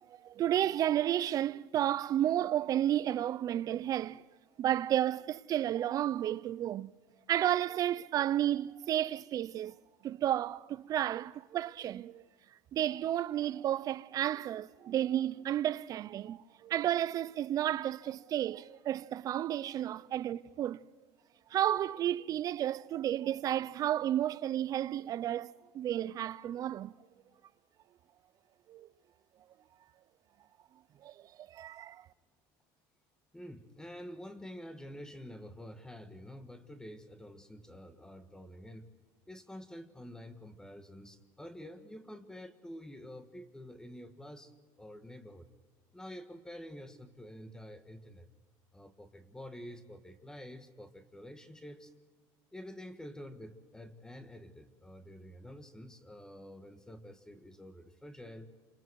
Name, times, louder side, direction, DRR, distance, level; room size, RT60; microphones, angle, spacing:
voice 1, 0.1-4.2 4.6-6.9 7.3-9.7 10.0-12.2 12.7-20.8 21.5-26.9 28.7-28.9 31.0-32.1, right 11 dB, 35° right, 0.6 m, -32 dB
voice 2, 33.3-38.9 39.3-45.5 45.9-48.3 48.7-51.9 52.5-58.5, equal, 5° left, 1.5 m, -48 dB
28.0 x 26.5 x 4.7 m
cardioid pair, 140°, 10 cm